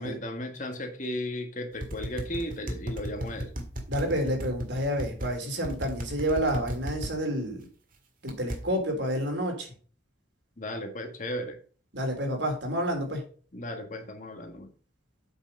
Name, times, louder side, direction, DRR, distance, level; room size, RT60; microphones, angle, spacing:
voice 1, 0.0-3.5 10.6-11.6 13.5-14.7, left 1 dB, 45° left, 1.6 m, -35 dB
sound 1, 1.8-5.3 5.6-7.1 8.3-8.6, equal, 45° right, 1.9 m, -34 dB
voice 2, 3.9-7.7 8.2-9.7 11.9-13.2, equal, 70° right, 3.4 m, -29 dB
8.3 x 5.9 x 5.3 m
head